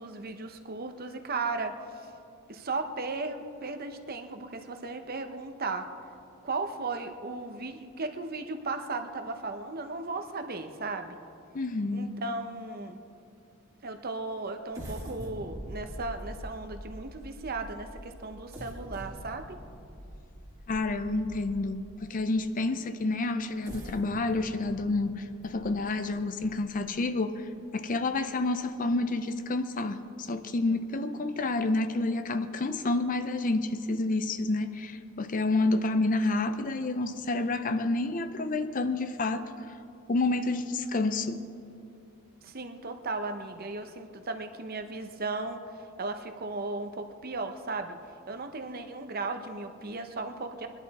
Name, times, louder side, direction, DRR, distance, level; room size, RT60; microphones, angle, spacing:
voice 1, 0.0-2.1 2.5-5.9 6.4-11.2 11.9-13.0 13.8-19.6 42.4-45.6 46.0-48.0 48.3-50.7, right 3 dB, 40° right, 7 dB, 0.8 m, -36 dB
voice 2, 11.5-12.1 20.7-39.7 40.1-41.4, left 2 dB, 35° left, 10 dB, 0.5 m, -29 dB
sound 1, 14.7-21.8 22.4-22.5 23.4-26.9 27.4-27.5 27.9-28.2, equal, 15° right, 1.9 m, -44 dB
21.5 x 11.0 x 4.2 m, 2.6 s
head